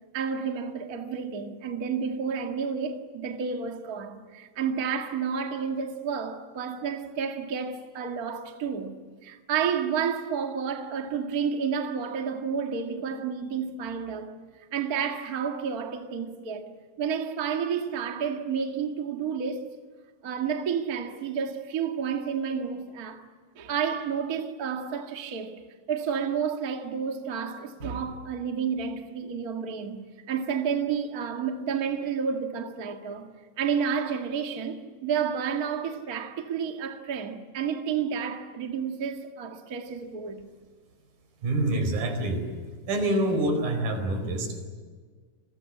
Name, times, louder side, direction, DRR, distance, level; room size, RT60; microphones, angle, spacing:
voice 1, 0.1-8.9 9.2-14.4 14.7-16.7 17.0-19.7 20.2-23.2 23.5-25.5 25.9-33.3 33.6-40.4, right 6 dB, 35° right, 1.7 m, -30 dB
voice 2, 41.4-42.4 42.9-44.6, right 1 dB, 80° right, 6.2 m, -26 dB
29.0 x 23.5 x 8.5 m
omnidirectional pair, 4.0 m